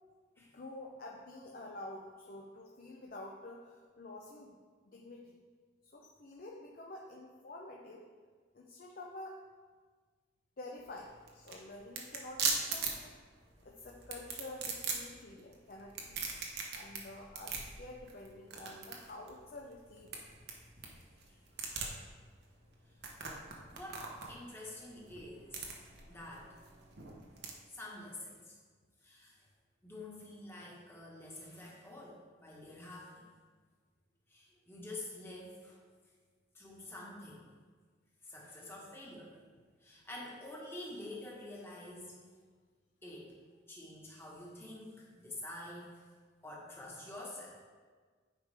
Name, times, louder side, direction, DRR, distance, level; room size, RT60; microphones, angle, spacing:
voice 1, 0.4-4.6 4.9-5.3 5.8-8.1 8.5-9.5 10.6-13.2 13.6-16.5 16.7-20.1, left 2 dB, 50° left, -1 dB, 0.6 m, -49 dB
sound 1, 10.8-27.5, right 4 dB, 60° right, 1.0 m, -41 dB
voice 2, 23.7-25.6 26.1-26.6 27.7-28.6 29.0-29.4 29.8-33.3 34.3-35.8 36.5-37.4 38.2-39.4 39.8-42.2 43.0-43.3 43.7-46.0 46.4-47.6, left 1 dB, 15° left, -4 dB, 1.4 m, -48 dB
9.4 x 4.9 x 3.4 m, 1.5 s
head